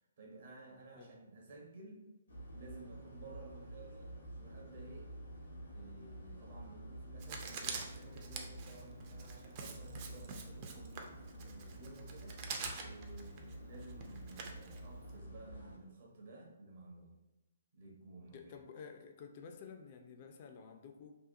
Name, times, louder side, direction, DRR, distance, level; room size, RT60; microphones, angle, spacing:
voice 1, 0.2-2.0 2.5-5.1 5.7-11.1 11.4-12.4 12.8-17.2 17.7-18.6, right 2 dB, 55° right, -1 dB, 0.7 m, -54 dB
sound 1, 2.3-15.8, right 1 dB, 85° left, 0.8 m, -50 dB
Writing, 7.2-15.2, right 5 dB, 35° right, 0.4 m, -46 dB
voice 2, 18.3-21.2, left 6 dB, 40° left, 4 dB, 0.3 m, -52 dB
2.7 x 2.2 x 2.5 m, 1.0 s
figure-of-eight pair, 135°, 0 cm